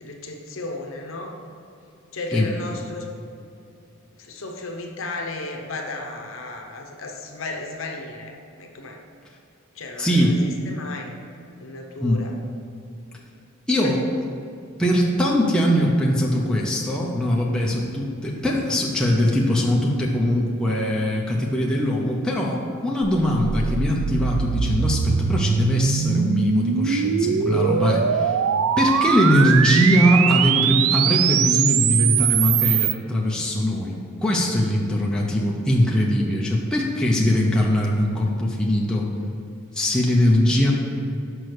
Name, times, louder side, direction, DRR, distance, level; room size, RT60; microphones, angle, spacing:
voice 1, 0.0-1.3 2.1-3.1 4.2-9.0 9.7-11.1 11.6-12.3 13.7-13.9, left 2 dB, 60° left, 2 dB, 0.8 m, -34 dB
voice 2, 10.0-10.4 12.0-12.2 13.7-14.0 14.8-28.4 28.8-39.1 39.7-40.7, equal, 5° left, -4 dB, 0.6 m, -21 dB
sound 1, 23.0-32.9, right 8 dB, 75° right, 0.3 m, -22 dB
6.2 x 5.2 x 4.8 m, 2.5 s
head